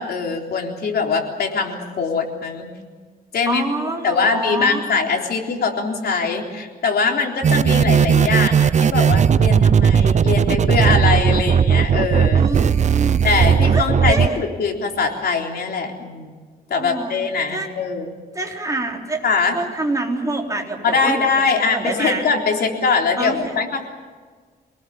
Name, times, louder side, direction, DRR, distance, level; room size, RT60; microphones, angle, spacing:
voice 1, 0.0-2.7 3.3-3.6 4.0-12.5 13.2-16.3 16.7-18.2 19.2-19.6 20.8-23.9, left 4 dB, 75° left, 1 dB, 3.9 m, -22 dB
voice 2, 3.5-4.8 12.3-13.2 13.7-14.4 16.8-17.1 17.5-17.7 18.3-19.2 19.5-21.2 21.5-22.3 23.2-23.6, right 2 dB, 20° right, 0 dB, 3.9 m, -26 dB
sound 1, 7.4-14.3, right 7 dB, 45° right, 0.6 m, -16 dB
27.0 x 19.0 x 7.3 m, 1.5 s
wide cardioid pair, 130°, 17 cm